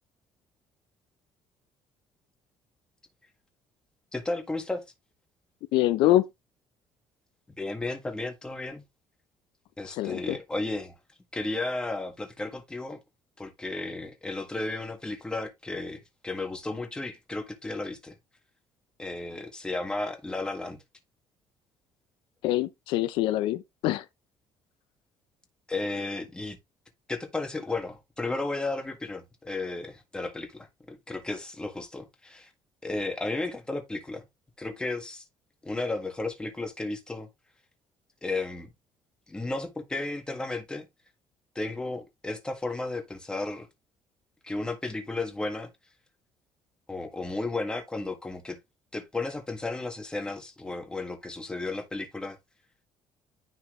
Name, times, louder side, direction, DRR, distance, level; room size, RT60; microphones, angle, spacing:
voice 1, 4.1-4.8 7.6-8.8 9.8-11.0 11.3-13.0 13.4-18.1 19.0-20.8 25.7-26.6 27.1-32.5 32.8-34.2 34.6-35.2 35.6-37.3 38.2-38.7 39.3-40.9 41.6-43.7 44.4-45.7 46.9-48.6 48.9-52.4, left 2 dB, 10° left, 1.7 m, -33 dB
voice 2, 5.7-6.2 9.9-10.4 22.4-24.0, left 15 dB, 90° left, 0.7 m, -25 dB
9.9 x 4.4 x 3.2 m
cardioid pair, 150°, 8 cm